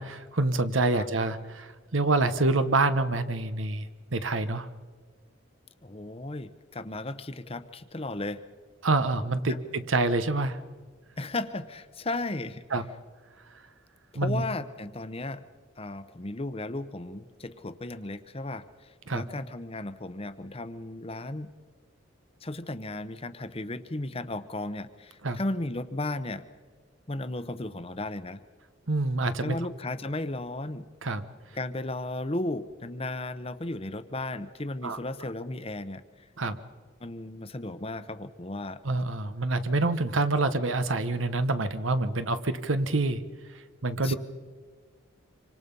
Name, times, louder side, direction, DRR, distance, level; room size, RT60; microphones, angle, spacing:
voice 1, 0.0-4.7 8.8-10.6 12.7-12.8 14.1-14.4 19.1-19.2 25.2-25.4 28.9-29.6 31.0-31.2 34.8-35.0 36.4-36.6 38.8-43.2 43.8-44.2, right 2 dB, 80° right, 11 dB, 1.1 m, -27 dB
voice 2, 5.8-8.4 9.5-9.6 11.2-12.6 14.1-15.4 15.8-21.5 22.4-26.5 27.1-28.4 29.4-30.9 31.5-36.0 37.0-38.8 44.0-44.2, left 2 dB, 30° left, 12 dB, 0.9 m, -35 dB
26.0 x 25.0 x 5.5 m, 1.5 s
head